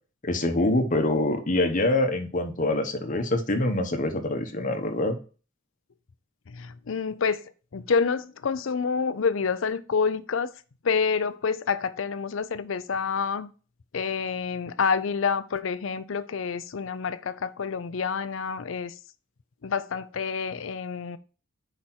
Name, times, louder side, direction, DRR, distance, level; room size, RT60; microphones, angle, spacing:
voice 1, 0.2-5.2, left 1 dB, 40° left, 1.1 m, -25 dB
voice 2, 6.5-10.5 10.8-13.5 13.9-18.9 19.6-21.2, left 5 dB, 70° left, 0.5 m, -28 dB
5.1 x 4.2 x 6.0 m
head